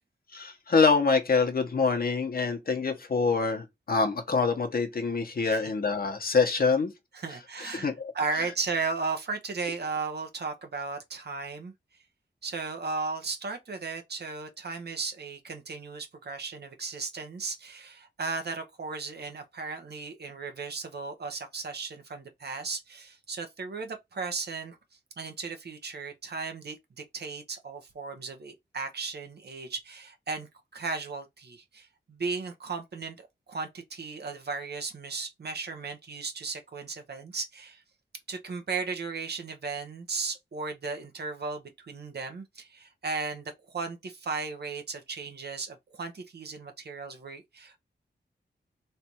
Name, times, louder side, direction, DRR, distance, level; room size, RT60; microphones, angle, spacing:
voice 1, 0.3-6.9 7.7-8.1 8.4-8.5, left 4 dB, 50° left, 1.1 m, -25 dB
voice 2, 7.1-11.7 12.4-24.8 25.2-37.8 38.3-47.8, right 4 dB, 60° right, 0.9 m, -36 dB
3.3 x 2.6 x 4.5 m
wide cardioid pair, 85°, 19 cm